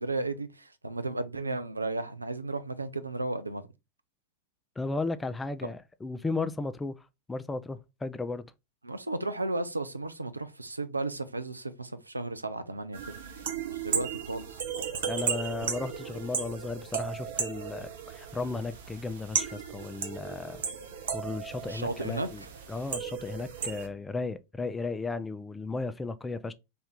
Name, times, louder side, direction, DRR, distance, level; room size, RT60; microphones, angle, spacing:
voice 1, 0.0-3.6 8.8-13.2 13.7-14.6 21.7-22.3, right 2 dB, 80° right, 0.4 m, -34 dB
voice 2, 4.8-7.0 7.3-8.5 15.1-20.6 21.1-22.4 22.7-26.5, left 3 dB, 10° left, 0.3 m, -35 dB
sound 1, 12.9-23.9, right 7 dB, 60° right, 0.7 m, -35 dB
3.4 x 2.6 x 3.5 m
figure-of-eight pair, 90°, 0 cm